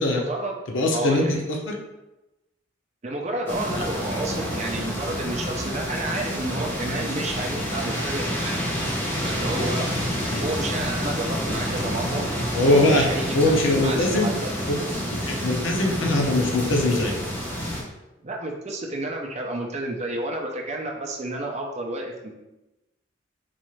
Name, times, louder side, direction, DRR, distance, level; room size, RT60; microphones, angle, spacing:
voice 1, 0.1-0.5 0.9-1.4 3.0-8.6 9.2-9.9 10.4-12.2 12.6-13.3 13.7-14.5 18.2-22.3, right 2 dB, 35° right, 1 dB, 0.5 m, -30 dB
voice 2, 0.7-1.7 10.3-10.5 12.5-13.0 13.3-14.3 15.4-17.2, left 2 dB, 75° left, 1 dB, 0.7 m, -21 dB
sound 1, 3.5-17.8, equal, 10° left, 0.7 m, -28 dB
4.1 x 2.4 x 3.0 m, 0.97 s
head